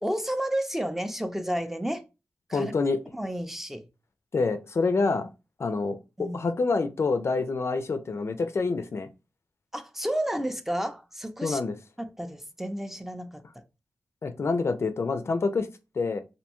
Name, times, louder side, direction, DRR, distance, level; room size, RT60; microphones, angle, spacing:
voice 1, 0.0-2.0 2.5-2.7 3.1-3.8 6.2-6.5 9.7-11.6 12.0-13.4, equal, 5° right, 0.4 m, -31 dB
voice 2, 2.5-3.0 4.3-5.3 5.6-9.1 11.4-11.7 14.2-15.7 16.0-16.2, left 4 dB, 55° left, 0.4 m, -27 dB
2.6 x 2.2 x 2.8 m
cardioid pair, 40°, 5 cm